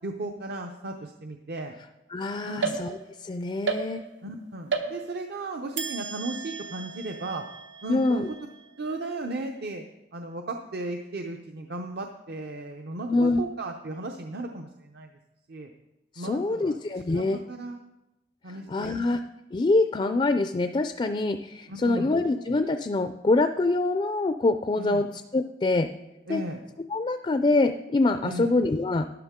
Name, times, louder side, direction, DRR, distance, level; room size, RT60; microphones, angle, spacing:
voice 1, 0.0-1.8 2.4-2.8 4.2-7.5 7.8-8.2 8.8-9.8 10.1-15.1 15.5-15.7 16.2-16.8 17.1-17.8 18.4-19.1 21.7-22.2 24.8-25.1 26.3-26.6 28.2-28.5, right 2 dB, 60° right, 4 dB, 0.6 m, -35 dB
voice 2, 2.1-2.9 3.2-4.0 7.9-8.3 13.1-13.4 16.2-17.4 18.7-19.2 19.5-25.1 25.3-25.9 26.3-26.4 26.9-29.2, left 2 dB, 25° left, 8 dB, 0.3 m, -25 dB
sound 1, 2.6-3.3 3.7-4.3 4.7-5.4 5.8-9.2, right 5 dB, 85° right, 1.1 m, -34 dB
12.5 x 10.5 x 3.6 m, 0.96 s
head